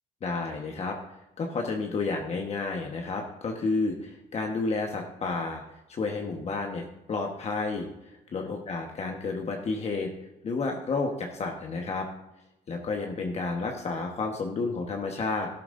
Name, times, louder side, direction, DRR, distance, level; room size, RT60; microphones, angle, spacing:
voice 1, 0.2-1.0 1.4-5.6 5.9-10.1 10.4-12.1 12.7-15.5, left 3 dB, 40° left, 1 dB, 1.3 m, -31 dB
13.5 x 12.0 x 2.6 m, 0.94 s
cardioid pair, 110°, 17 cm